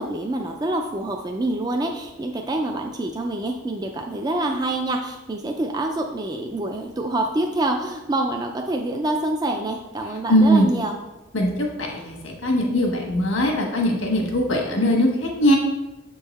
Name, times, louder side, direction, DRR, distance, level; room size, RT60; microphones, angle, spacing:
voice 1, 0.0-11.0, right 1 dB, 20° right, 3 dB, 0.3 m, -26 dB
voice 2, 10.3-10.7 11.3-15.6, equal, 80° left, 1 dB, 1.3 m, -20 dB
7.2 x 3.8 x 4.1 m, 1.1 s
head